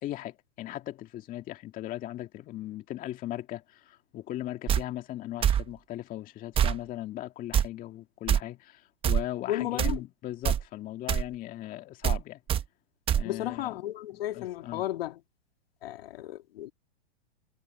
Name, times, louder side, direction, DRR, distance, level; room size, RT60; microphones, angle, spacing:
voice 1, 0.0-12.4 13.1-13.8 14.3-14.8, left 14 dB, 25° left, 2.0 m, -38 dB
sound 1, 4.7-4.8 5.4-5.6 6.5-6.8 7.5-7.7 8.3-8.4 9.0-9.2 9.8-10.0 10.4-10.6 11.1-11.3 12.0-12.2 12.5-12.6 13.1-13.2, right 9 dB, 15° right, 1.0 m, -24 dB
voice 2, 9.5-10.0 13.2-15.2 15.8-16.7, left 14 dB, 60° left, 2.3 m, -33 dB
hypercardioid pair, 140°, 34 cm